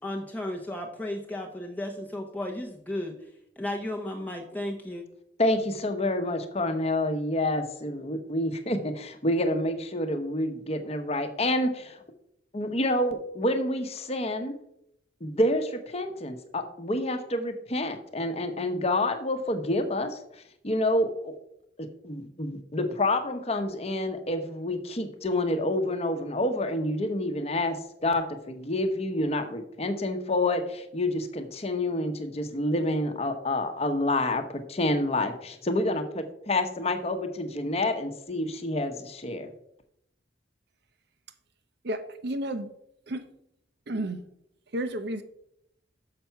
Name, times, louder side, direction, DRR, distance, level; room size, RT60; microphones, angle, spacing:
voice 1, 0.0-3.3 3.6-5.0, left 1 dB, 10° left, 1 dB, 0.7 m, -34 dB
voice 2, 5.4-12.0 12.5-14.5 15.2-20.2 20.6-21.3 21.8-27.8 28.0-34.4 34.7-39.5, left 1 dB, 35° left, 7 dB, 0.9 m, -28 dB
voice 3, 41.8-42.7 43.1-43.3 43.9-44.2 44.7-45.2, right 1 dB, 60° right, 10 dB, 0.8 m, -31 dB
6.8 x 5.8 x 5.7 m, 0.77 s
head